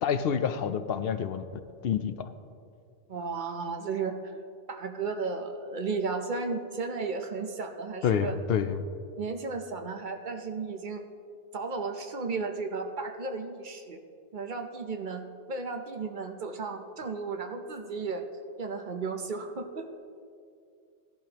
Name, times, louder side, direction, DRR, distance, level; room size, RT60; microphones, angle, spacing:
voice 1, 0.0-1.5 1.8-2.3 8.0-8.8, left 8 dB, 70° left, 11 dB, 0.8 m, -28 dB
voice 2, 3.1-4.1 4.7-8.4 9.2-11.0 11.5-14.0 14.3-18.2 18.6-19.9, right 4 dB, 55° right, 5 dB, 0.9 m, -34 dB
16.5 x 11.0 x 2.9 m, 2.4 s
omnidirectional pair, 1.1 m